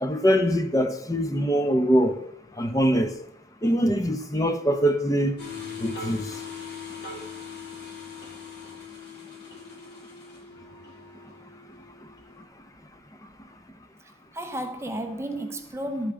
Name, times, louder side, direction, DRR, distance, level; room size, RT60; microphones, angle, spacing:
voice 1, 0.0-2.2 2.6-3.1 3.6-5.4 5.8-6.3, equal, 20° left, 0.7 m, -23 dB
sound 1, 5.4-12.3, left 5 dB, 60° left, 2.4 m, -40 dB
voice 2, 14.0-16.1, right 1 dB, 15° right, 0.6 m, -32 dB
11.0 x 8.5 x 3.6 m
head